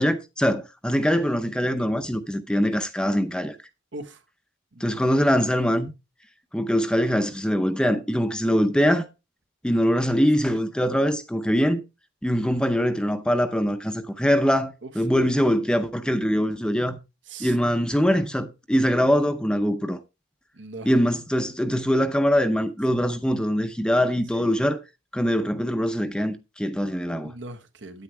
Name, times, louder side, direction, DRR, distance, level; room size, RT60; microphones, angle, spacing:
voice 1, 0.0-3.6 4.8-5.9 6.5-9.1 9.6-11.8 12.2-17.0 17.4-20.0 20.8-24.8 25.1-27.3, equal, 5° left, 0.6 m, -23 dB
voice 2, 3.9-4.2 4.7-5.2 14.8-15.3 17.3-17.6 20.5-20.9 24.3-24.5 27.2-28.0, right 2 dB, 65° right, 1.2 m, -40 dB
9.5 x 9.1 x 3.3 m
head